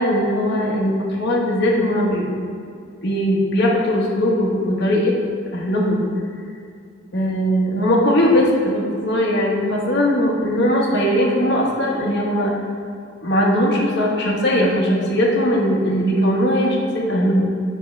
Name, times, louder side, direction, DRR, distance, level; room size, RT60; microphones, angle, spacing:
voice 1, 0.0-2.3 3.0-5.1 5.5-6.0 7.1-12.5 13.2-17.5, equal, 60° left, -2 dB, 1.3 m, -19 dB
8.3 x 5.9 x 3.3 m, 2.3 s
head